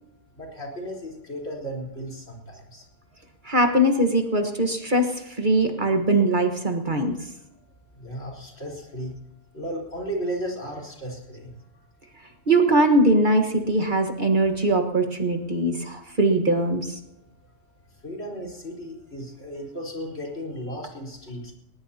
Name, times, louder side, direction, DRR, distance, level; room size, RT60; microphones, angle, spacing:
voice 1, 0.3-2.9 6.9-7.2 8.0-9.1 9.5-11.5 18.0-21.5, equal, 60° left, -2 dB, 4.6 m, -35 dB
voice 2, 3.4-7.1 12.5-16.9, right 1 dB, 40° right, 4 dB, 1.7 m, -21 dB
20.0 x 19.5 x 2.9 m, 0.81 s
omnidirectional pair, 1.2 m